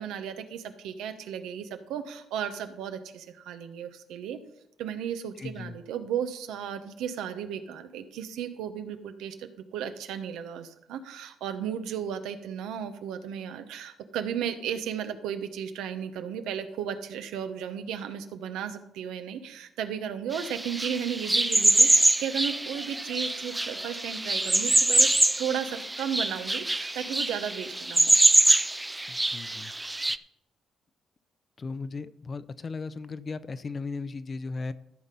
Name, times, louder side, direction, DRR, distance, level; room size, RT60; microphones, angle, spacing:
voice 1, 0.0-4.4 4.8-25.1 25.4-28.1, right 8 dB, 90° right, 8 dB, 1.0 m, -34 dB
voice 2, 5.4-5.8 29.1-29.7 31.6-34.7, left 4 dB, 40° left, 15 dB, 0.6 m, -36 dB
sound 1, 20.3-30.2, right 2 dB, 15° right, 0.4 m, -24 dB
14.0 x 5.9 x 5.3 m, 0.83 s
cardioid pair, 90°, 0 cm